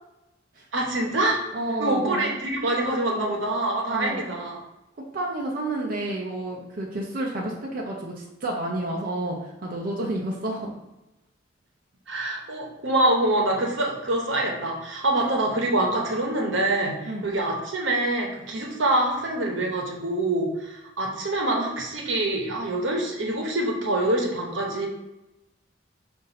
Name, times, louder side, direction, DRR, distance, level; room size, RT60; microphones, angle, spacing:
voice 1, 0.7-1.4 1.8-4.6 12.1-24.9, right 1 dB, 80° right, 0 dB, 0.9 m, -25 dB
voice 2, 1.5-2.3 3.9-4.3 5.1-10.7 17.1-17.3, right 1 dB, 50° right, -2 dB, 0.6 m, -30 dB
5.2 x 2.6 x 4.0 m, 0.94 s
head